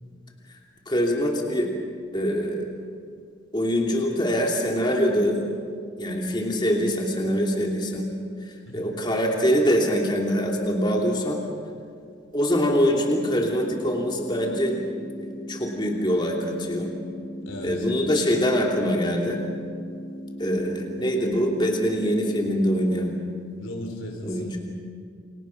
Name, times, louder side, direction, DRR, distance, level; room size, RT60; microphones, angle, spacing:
voice 1, 0.9-1.7 2.1-2.7 3.5-5.4 6.0-8.1 8.7-11.4 12.3-14.8 15.2-16.9 17.6-19.4 20.4-23.2 24.2-24.6, equal, 25° left, 0 dB, 2.9 m, -24 dB
sound 1, 13.1-23.1, equal, 75° left, 3.5 m, -38 dB
voice 2, 17.4-17.9 23.6-24.6, equal, 90° left, 2 dB, 4.9 m, -36 dB
29.0 x 26.5 x 5.9 m, 2.2 s
head